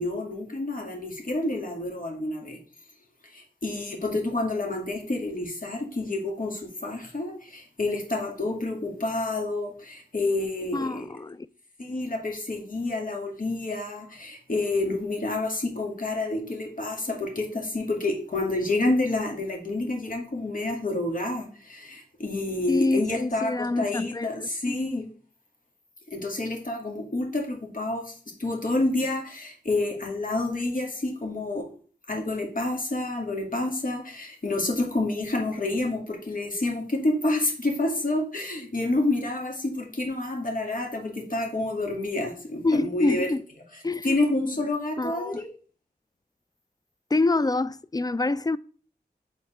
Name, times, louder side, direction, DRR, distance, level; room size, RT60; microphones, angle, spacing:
voice 1, 0.0-2.6 3.3-11.1 11.8-25.1 26.1-31.7 32.1-43.3 44.0-45.5, left 2 dB, 50° left, 2.0 m, -29 dB
voice 2, 10.7-11.5 22.7-24.8 42.6-43.4 43.8-44.1 45.0-45.4 47.1-48.6, left 2 dB, 20° left, 0.3 m, -26 dB
7.2 x 4.1 x 4.3 m
cardioid pair, 45°, 17 cm